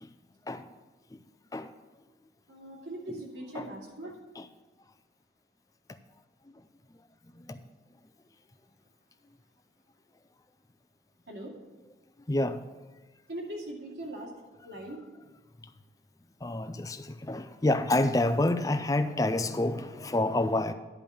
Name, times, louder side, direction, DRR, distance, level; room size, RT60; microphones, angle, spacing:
voice 1, 2.5-4.1 11.3-11.5 13.3-14.3 14.6-15.0, right 1 dB, 80° right, 2.6 m, -40 dB
voice 2, 12.3-12.6 16.4-20.7, left 2 dB, 20° left, 0.4 m, -28 dB
11.0 x 5.2 x 7.1 m
head